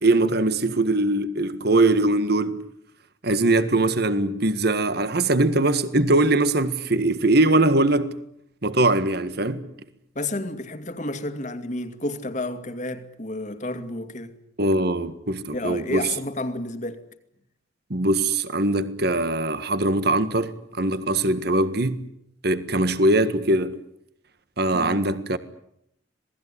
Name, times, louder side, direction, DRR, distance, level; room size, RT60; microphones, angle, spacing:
voice 1, 0.0-2.6 3.2-8.2 8.6-9.6 14.6-16.1 17.9-22.0 22.4-23.8 24.6-25.4, right 2 dB, 55° right, 1.7 m, -21 dB
voice 2, 10.1-14.3 15.5-17.0 24.7-25.1, left 2 dB, 40° left, 2.4 m, -31 dB
27.0 x 19.5 x 9.9 m
head